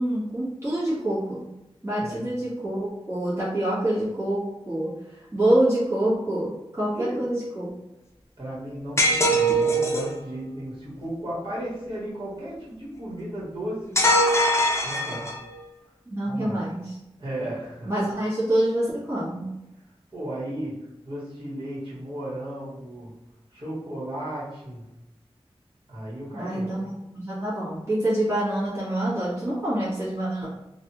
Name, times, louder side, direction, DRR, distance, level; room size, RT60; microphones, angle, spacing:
voice 1, 0.0-1.5 1.8-4.4 4.7-4.9 5.3-7.7 16.1-17.0 17.8-19.5 26.3-30.5, right 1 dB, 25° right, -10 dB, 1.3 m, -26 dB
voice 2, 1.9-2.3 6.9-7.2 8.4-14.0 14.8-15.3 16.2-16.6 17.2-17.9 20.1-23.1 23.5-24.9 25.9-26.7, right 1 dB, 55° right, -8 dB, 1.5 m, -35 dB
sound 1, 9.0-10.1 13.9-15.5, right 1 dB, 25° left, 0.6 m, -21 dB
3.1 x 2.4 x 2.9 m, 0.93 s
wide cardioid pair, 70°, 10 cm